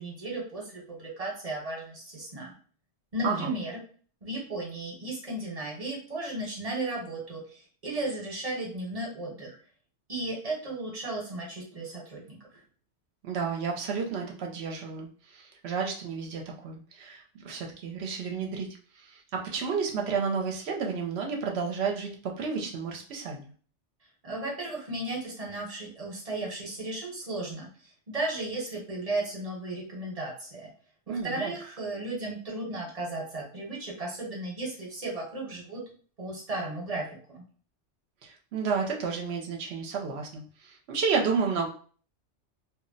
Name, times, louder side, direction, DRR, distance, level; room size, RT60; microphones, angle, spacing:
voice 1, 0.0-2.5 3.1-3.8 4.2-9.6 10.1-12.6 24.2-27.7 28.1-30.7 31.1-35.8 36.2-37.4, right 2 dB, 35° right, -2 dB, 0.9 m, -35 dB
voice 2, 13.2-18.7 19.0-23.5 31.1-31.5 38.2-41.7, right 5 dB, 70° right, 1 dB, 0.8 m, -31 dB
2.3 x 2.0 x 3.8 m, 0.43 s
omnidirectional pair, 1.2 m